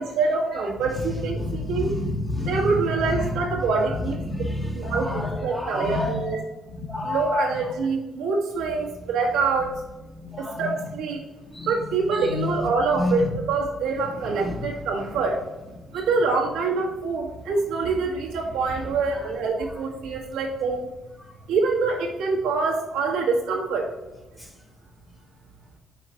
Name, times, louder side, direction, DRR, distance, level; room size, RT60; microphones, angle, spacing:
voice 1, 0.0-1.9 2.5-4.2 4.7-6.4 7.0-9.7 10.4-11.2 11.7-15.4 15.9-20.9 21.5-23.9, right 4 dB, 90° right, -1 dB, 1.6 m, -25 dB
voice 2, 0.8-3.7 4.1-6.4 6.7-7.7 9.7-9.8 10.1-10.9 11.3-13.4 14.1-14.7 15.8-16.1 19.1-19.2 21.2-21.4 24.4-24.5, left 2 dB, 10° left, 2 dB, 1.4 m, -30 dB
5.8 x 4.2 x 4.4 m, 1.0 s
cardioid pair, 90°, 0 cm